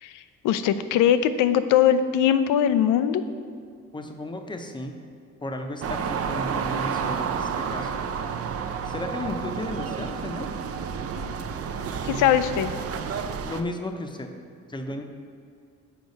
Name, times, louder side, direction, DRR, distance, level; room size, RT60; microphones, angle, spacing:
voice 1, 0.0-3.2 12.0-12.7, left 9 dB, 85° left, 11 dB, 0.5 m, -21 dB
voice 2, 3.9-5.0 5.4-8.0 8.8-10.5 13.4-14.3 14.7-15.0, left 1 dB, 15° left, 5 dB, 0.6 m, -34 dB
sound 1, 5.8-13.6, right 6 dB, 50° right, 0.5 m, -30 dB
6.5 x 4.6 x 5.3 m, 2.2 s
cardioid pair, 90°, 30 cm